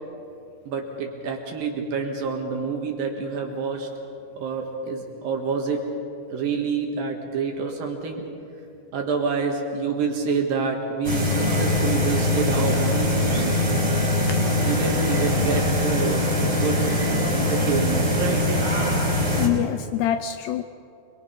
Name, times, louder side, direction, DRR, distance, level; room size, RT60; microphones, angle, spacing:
voice 1, 0.7-3.9 4.4-5.9 6.3-8.3 8.9-13.6 14.6-17.0 17.3-18.5, right 5 dB, 60° right, 2 dB, 3.0 m, -27 dB
sound 1, 11.0-19.5, left 1 dB, 10° right, 3.8 m, -22 dB
voice 2, 19.4-20.6, left 12 dB, 80° left, 9 dB, 2.4 m, -25 dB
27.0 x 22.0 x 5.7 m, 2.6 s
omnidirectional pair, 5.2 m